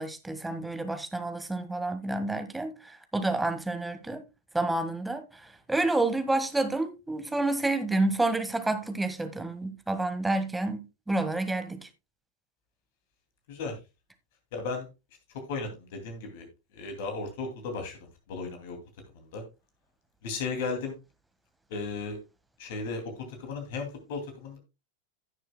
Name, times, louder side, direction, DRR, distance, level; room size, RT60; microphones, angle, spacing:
voice 1, 0.0-2.7 3.1-4.2 4.5-5.2 5.7-11.9, right 2 dB, 5° right, 1.5 m, -29 dB
voice 2, 14.5-14.9 15.5-16.5 16.8-17.9 18.3-18.8 19.3-19.4 20.2-20.9 21.7-22.2 22.6-23.0 23.4-24.6, left 4 dB, 50° left, 2.5 m, -35 dB
16.0 x 6.5 x 2.2 m
figure-of-eight pair, 90°, 0 cm